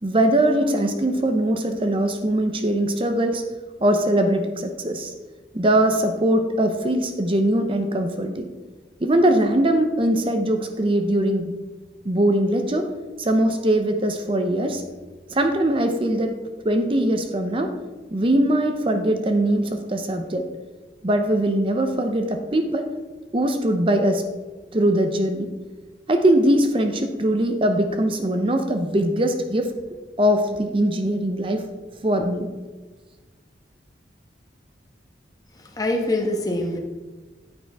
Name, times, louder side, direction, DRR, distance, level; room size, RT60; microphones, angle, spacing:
voice 1, 0.0-3.4 3.8-5.1 5.5-8.5 9.0-11.5 12.0-12.9 13.2-14.8 15.3-16.4 16.6-17.7 18.1-20.4 21.0-22.9 23.3-24.2 24.7-25.5 26.1-29.7 30.2-31.7 32.0-32.5, right 1 dB, 30° right, 6 dB, 0.7 m, -21 dB
voice 2, 35.5-36.8, left 1 dB, 20° left, 1 dB, 1.1 m, -24 dB
9.6 x 8.9 x 3.5 m, 1.3 s
head